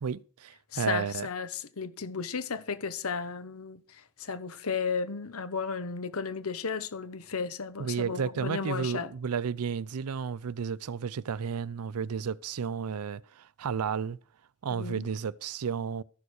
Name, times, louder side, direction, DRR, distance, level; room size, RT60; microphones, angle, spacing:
voice 1, 0.0-1.3 7.8-14.2 14.6-16.0, right 6 dB, 90° right, 0.5 m, -32 dB
voice 2, 0.7-3.8 4.2-9.1 14.7-15.1, left 5 dB, 80° left, 1.0 m, -34 dB
13.5 x 6.9 x 6.4 m
head